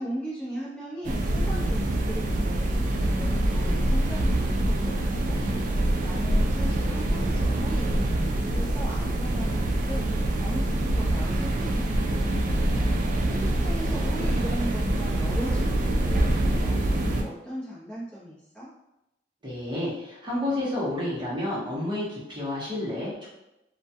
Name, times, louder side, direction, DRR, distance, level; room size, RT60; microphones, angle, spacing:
voice 1, 0.0-5.4 5.7-12.7 13.2-18.7, equal, 5° left, -10 dB, 0.7 m, -38 dB
sound 1, 1.0-17.2, right 1 dB, 45° right, 0.3 m, -25 dB
voice 2, 19.4-23.3, left 1 dB, 25° right, -7 dB, 0.8 m, -30 dB
2.2 x 2.2 x 2.7 m, 0.88 s
head